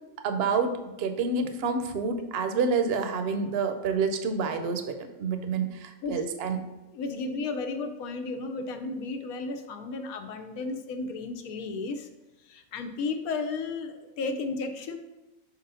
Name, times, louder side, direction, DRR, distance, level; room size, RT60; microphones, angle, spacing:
voice 1, 0.2-6.6, right 4 dB, 55° right, 7 dB, 0.8 m, -28 dB
voice 2, 6.9-12.1 12.4-15.0, left 3 dB, 80° left, 7 dB, 1.2 m, -33 dB
5.1 x 4.0 x 5.5 m, 1.1 s
omnidirectional pair, 1.5 m